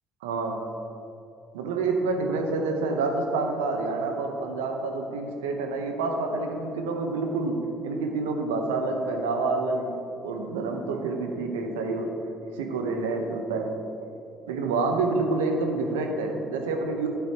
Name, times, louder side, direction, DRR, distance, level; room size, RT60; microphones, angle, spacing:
voice 1, 0.2-0.6 1.5-10.0 10.2-12.2 12.5-13.8 14.5-17.1, right 3 dB, 85° right, 4 dB, 0.8 m, -28 dB
12.0 x 7.4 x 2.9 m, 2.8 s
hypercardioid pair, 60°, 0 cm